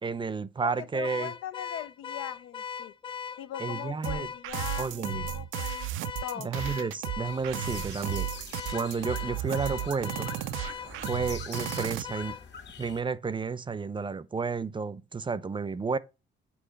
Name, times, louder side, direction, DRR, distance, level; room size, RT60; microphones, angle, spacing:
voice 1, 0.0-1.3 3.6-4.3 4.8-5.3 6.4-8.3 8.7-10.3 11.1-12.4 12.8-16.0, right 5 dB, 25° right, 0.6 m, -31 dB
voice 2, 0.6-2.9 3.4-5.9 6.2-6.6, left 12 dB, 90° left, 0.6 m, -40 dB
Car / Alarm, 1.0-12.5, left 7 dB, 25° left, 0.4 m, -39 dB
sound 1, 4.0-12.0, right 14 dB, 90° right, 0.5 m, -34 dB
sound 2, 7.2-13.0, left 5 dB, 65° left, 1.8 m, -45 dB
8.6 x 4.7 x 5.1 m
cardioid pair, 90°, 20 cm